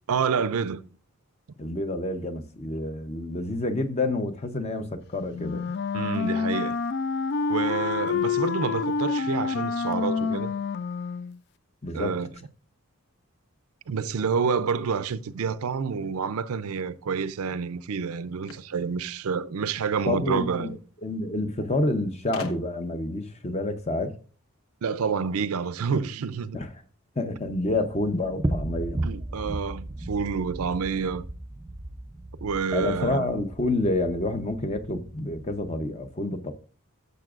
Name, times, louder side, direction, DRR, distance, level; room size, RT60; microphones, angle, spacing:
voice 1, 0.1-0.8 5.9-6.8 7.5-10.5 11.9-12.3 13.9-20.8 24.8-26.6 29.0-31.2 32.4-33.3, right 5 dB, 75° right, 0.5 m, -28 dB
voice 2, 1.6-5.6 11.8-12.2 20.1-20.7 21.0-24.1 26.5-26.7 27.2-29.1 32.7-36.5, left 2 dB, 30° left, 0.7 m, -28 dB
Wind instrument woodwind instrument, 5.3-11.4, left 5 dB, 50° left, 0.3 m, -28 dB
sound 1, 18.4-19.8 20.9-21.0 21.3-21.4 22.3-23.0, left 2 dB, 75° left, 1.1 m, -41 dB
sound 2, 27.5-35.8, right 1 dB, 15° right, 0.4 m, -36 dB
13.5 x 6.9 x 2.4 m
head